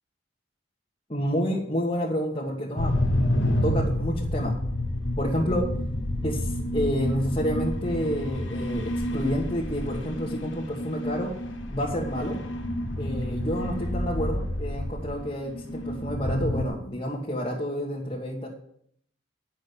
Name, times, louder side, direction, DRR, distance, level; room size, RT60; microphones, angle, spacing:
voice 1, 1.1-3.0 3.6-4.6 5.2-5.7 6.2-11.3 11.7-12.4 13.0-18.5, equal, 30° left, -4 dB, 1.5 m, -29 dB
sound 1, 2.8-16.7, left 1 dB, 85° left, 1.4 m, -29 dB
9.5 x 6.3 x 8.1 m, 0.67 s
head